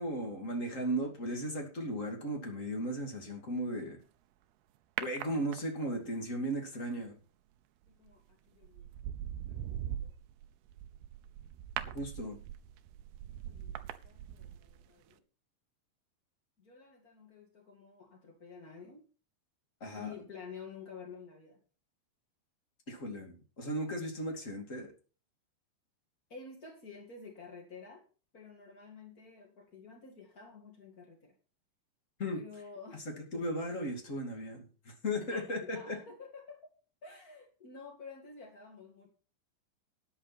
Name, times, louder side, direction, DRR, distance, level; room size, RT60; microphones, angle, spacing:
voice 1, 0.0-4.0 5.0-7.1 11.9-12.4 19.8-20.1 22.9-24.9 32.2-32.4 33.3-36.0, equal, 30° left, 1 dB, 1.5 m, -36 dB
sound 1, 5.0-6.0 7.9-8.2 8.6-14.8 15.1-15.2, right 10 dB, 85° right, 2.2 m, -42 dB
voice 2, 7.9-8.9 9.2-10.1 13.3-15.2 16.6-19.0 19.9-21.6 26.3-28.0 28.3-31.3 32.3-33.0 35.3-36.7 37.0-39.1, left 5 dB, 55° left, 1 dB, 0.9 m, -51 dB
13.0 x 9.8 x 4.2 m, 0.37 s
omnidirectional pair, 5.5 m